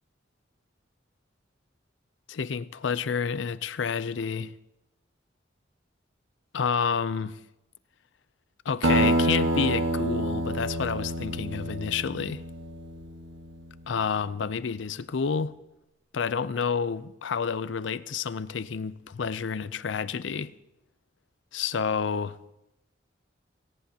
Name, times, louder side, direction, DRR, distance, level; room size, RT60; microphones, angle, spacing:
voice 1, 2.3-4.5 6.5-7.3 8.7-12.4 13.9-15.5 16.1-20.5 21.5-22.4, left 6 dB, 75° left, 0.5 m, -29 dB
Acoustic guitar, 8.8-13.7, right 1 dB, 75° right, 1.3 m, -27 dB
18.0 x 17.0 x 2.8 m
head